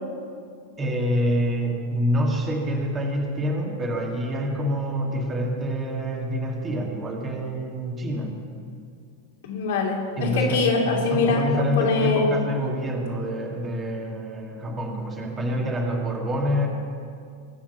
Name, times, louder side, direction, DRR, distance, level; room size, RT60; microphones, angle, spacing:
voice 1, 0.8-8.4 10.2-10.7 11.1-16.7, equal, 20° right, 0 dB, 2.3 m, -26 dB
voice 2, 9.4-12.4, left 4 dB, 55° left, -1 dB, 2.8 m, -23 dB
21.0 x 7.2 x 7.1 m, 2.3 s
figure-of-eight pair, 90°, 0 cm